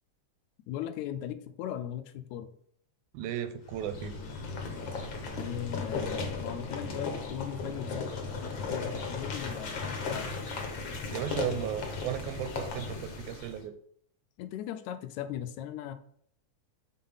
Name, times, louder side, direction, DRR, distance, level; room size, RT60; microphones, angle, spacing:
voice 1, 0.7-2.5 5.3-10.3 14.4-15.9, left 11 dB, 80° left, 9 dB, 1.9 m, -38 dB
voice 2, 3.1-4.1 11.1-13.7, right 11 dB, 90° right, 9 dB, 2.0 m, -35 dB
sound 1, 3.6-13.6, left 4 dB, 60° left, 1.3 m, -36 dB
5.6 x 4.3 x 5.5 m, 0.65 s
omnidirectional pair, 3.4 m